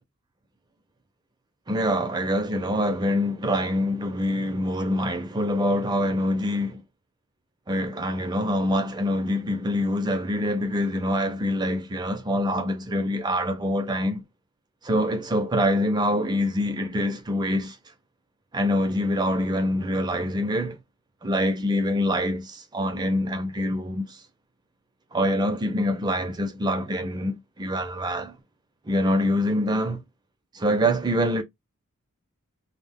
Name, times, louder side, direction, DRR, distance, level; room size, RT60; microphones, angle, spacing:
voice 1, 1.7-6.8 7.7-14.2 14.8-17.8 18.5-20.8 21.2-24.2 25.1-28.4 28.9-30.0 30.5-31.4, equal, 20° right, 0.4 m, -25 dB
2.3 x 2.1 x 3.3 m
head